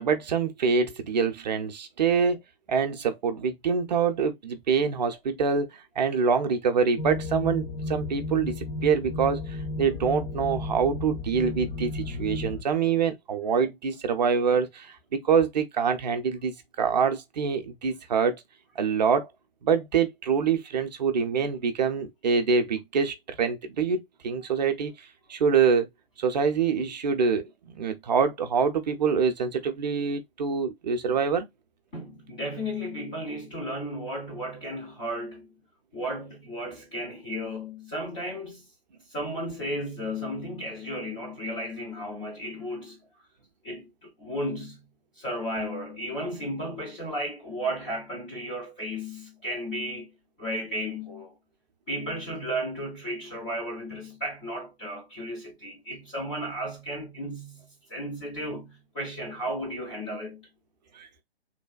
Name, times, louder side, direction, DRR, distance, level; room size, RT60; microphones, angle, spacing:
voice 1, 0.0-2.4 2.7-5.7 6.0-18.4 18.8-19.3 19.6-24.9 25.3-25.9 26.2-31.5 61.0-61.1, right 6 dB, 45° right, 0.5 m, -25 dB
sound 1, 7.0-12.6, left 2 dB, 50° left, 0.9 m, -33 dB
voice 2, 31.9-35.5 35.9-38.7 39.1-43.0 43.6-44.8 45.2-50.1 50.4-51.3 51.9-60.5, equal, 10° left, 0.3 m, -34 dB
3.2 x 2.2 x 2.2 m
figure-of-eight pair, 125°, 30 cm